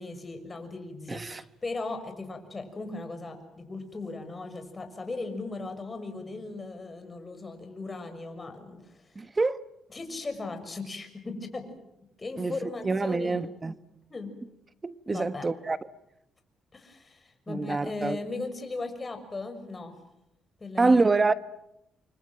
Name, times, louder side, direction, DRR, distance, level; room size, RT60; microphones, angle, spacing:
voice 1, 0.0-9.0 9.9-11.7 12.2-13.5 14.1-14.3 15.1-15.5 16.7-19.9 20.6-21.0, left 3 dB, 25° left, 6.4 m, -37 dB
voice 2, 1.1-1.4 9.1-9.6 12.4-13.7 14.8-15.8 17.5-18.2 20.8-21.3, right 3 dB, 25° right, 1.3 m, -26 dB
29.5 x 25.0 x 7.8 m
cardioid pair, 90°, 0 cm